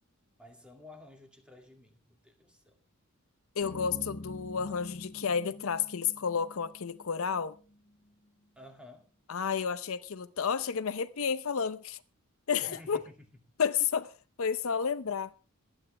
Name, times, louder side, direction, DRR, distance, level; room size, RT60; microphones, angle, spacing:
voice 1, 0.4-2.8 3.7-4.0 8.6-9.1 12.6-13.3, left 1 dB, 5° right, 2.2 m, -53 dB
voice 2, 3.6-7.6 9.3-12.0 12.5-13.0 13.6-14.1 14.4-15.3, left 6 dB, 65° left, 0.6 m, -31 dB
sound 1, 3.6-7.9, left 1 dB, 40° left, 1.2 m, -47 dB
22.5 x 9.0 x 3.3 m
head